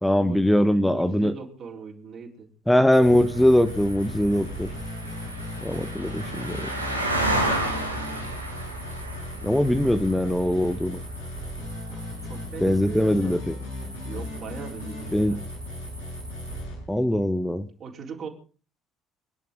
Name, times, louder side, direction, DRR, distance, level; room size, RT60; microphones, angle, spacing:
voice 1, 0.0-1.3 2.7-4.7 5.6-6.7 9.4-11.0 12.6-13.5 15.1-15.4 16.9-17.6, left 1 dB, 5° left, 11 dB, 1.4 m, -21 dB
voice 2, 0.7-2.5 11.9-13.3 14.0-15.4 17.8-18.3, right 5 dB, 45° right, -1 dB, 4.2 m, -40 dB
sound 1, 2.9-16.6, right 1 dB, 90° right, 2.3 m, -34 dB
sound 2, 3.0-17.1, left 1 dB, 75° left, 6.8 m, -36 dB
27.5 x 11.0 x 3.8 m, 0.39 s
figure-of-eight pair, 50°, 0 cm